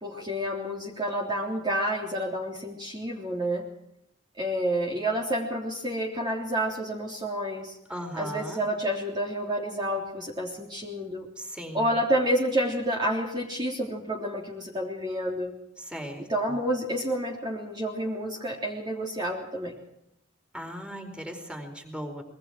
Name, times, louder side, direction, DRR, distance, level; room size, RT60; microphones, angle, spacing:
voice 1, 0.0-3.7 4.4-7.8 8.2-11.3 11.7-15.5 16.3-19.8, right 1 dB, 25° right, -1 dB, 3.3 m, -29 dB
voice 2, 7.9-8.6 11.4-12.0 15.8-16.6 20.5-22.2, equal, 5° right, 4 dB, 4.5 m, -38 dB
26.0 x 23.0 x 4.7 m, 0.81 s
head